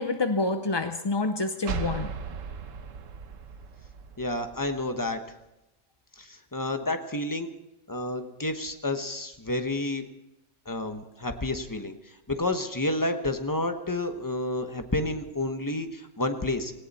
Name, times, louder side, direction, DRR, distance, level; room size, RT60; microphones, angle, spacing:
voice 1, 0.0-2.1, left 3 dB, 35° left, 8 dB, 0.4 m, -27 dB
sound 1, 1.6-5.2, right 6 dB, 75° right, 1.3 m, -37 dB
voice 2, 4.2-5.2 6.2-7.5 7.9-10.0 10.7-11.9 12.3-16.7, left 2 dB, 15° left, 7 dB, 1.0 m, -30 dB
18.5 x 17.5 x 4.2 m, 0.93 s
omnidirectional pair, 1.4 m